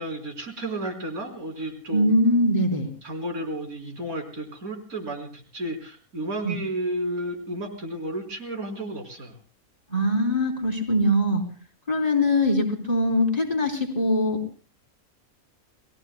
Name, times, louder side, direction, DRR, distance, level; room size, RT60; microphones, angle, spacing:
voice 1, 0.0-2.1 3.0-9.4, right 1 dB, 85° right, 2 dB, 4.4 m, -32 dB
voice 2, 1.9-2.9 6.4-6.6 9.9-11.4 11.9-14.4, left 1 dB, 25° left, 1 dB, 3.5 m, -22 dB
30.0 x 19.5 x 2.2 m, 0.40 s
omnidirectional pair, 1.5 m